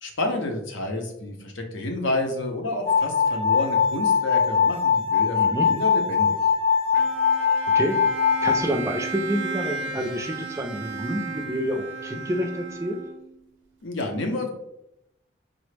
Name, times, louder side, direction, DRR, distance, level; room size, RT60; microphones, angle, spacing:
voice 1, 0.0-5.4 5.6-6.4 13.8-14.5, left 2 dB, 85° left, 3 dB, 0.7 m, -29 dB
sound 1, 2.9-8.6, left 6 dB, 25° left, 0.7 m, -21 dB
voice 2, 5.3-5.7 7.7-8.1 8.4-13.0, equal, 15° right, 3 dB, 0.3 m, -28 dB
Bowed string instrument, 6.9-13.4, right 4 dB, 90° right, 0.5 m, -34 dB
3.7 x 2.0 x 3.2 m, 0.81 s
head